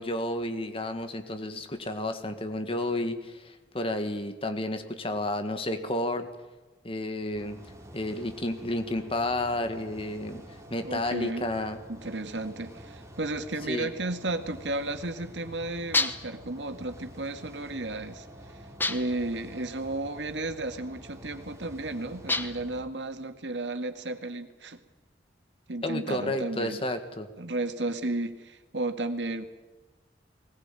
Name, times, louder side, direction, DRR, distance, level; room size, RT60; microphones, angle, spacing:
voice 1, 0.0-6.3 6.8-7.6 7.9-10.4 10.7-11.8 13.7-13.9 25.8-27.3, left 1 dB, 30° left, 7 dB, 1.7 m, -31 dB
sound 1, 7.3-22.8, equal, 15° right, 2.8 m, -48 dB
voice 2, 10.8-11.5 11.9-24.8 25.7-26.8 27.4-29.4, right 2 dB, 90° right, 7 dB, 2.1 m, -33 dB
sound 2, 15.9-16.4 18.8-19.3 22.3-22.7, left 3 dB, 10° left, 1.0 m, -28 dB
20.0 x 19.5 x 9.1 m, 1.2 s
head